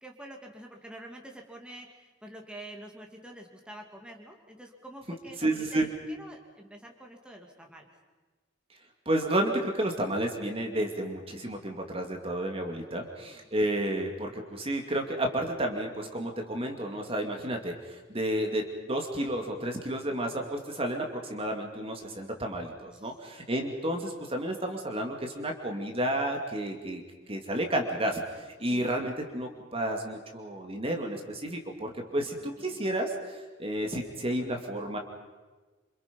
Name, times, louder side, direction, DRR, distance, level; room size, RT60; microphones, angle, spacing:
voice 1, 0.0-7.9 12.8-13.5 22.9-23.1 28.7-28.9 32.4-32.8, right 1 dB, 5° right, 1 dB, 2.6 m, -47 dB
voice 2, 5.4-5.9 9.1-18.6 18.9-27.0 27.3-35.0, right 1 dB, 30° right, 2 dB, 2.5 m, -31 dB
27.5 x 26.5 x 5.4 m, 1.3 s
head